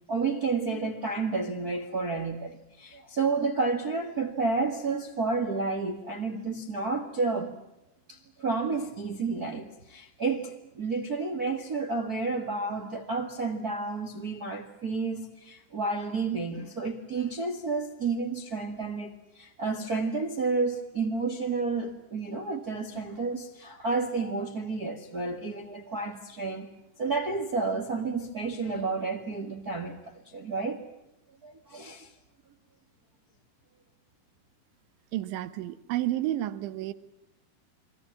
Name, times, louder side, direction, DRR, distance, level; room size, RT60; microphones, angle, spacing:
voice 1, 0.1-7.6 8.1-26.7 27.0-30.0 30.2-30.8 31.4-32.1, right 4 dB, 65° right, 0.9 m, -31 dB
voice 2, 35.1-36.9, right 14 dB, 85° right, 3.5 m, -31 dB
29.5 x 23.0 x 7.3 m
omnidirectional pair, 5.2 m